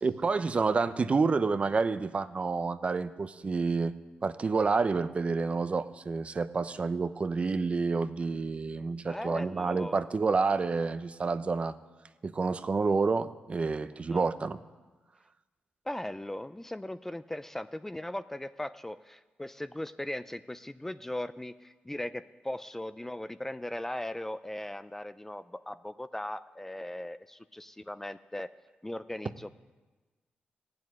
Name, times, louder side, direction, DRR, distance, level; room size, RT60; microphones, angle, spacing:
voice 1, 0.0-3.9 4.2-11.8 12.2-14.6, right 4 dB, 35° right, 13 dB, 0.6 m, -29 dB
voice 2, 9.0-10.0 14.1-14.3 15.9-28.5 28.8-29.5, left 1 dB, 10° left, 13 dB, 0.4 m, -38 dB
15.0 x 7.7 x 9.5 m, 1.3 s
cardioid pair, 90°, 3 cm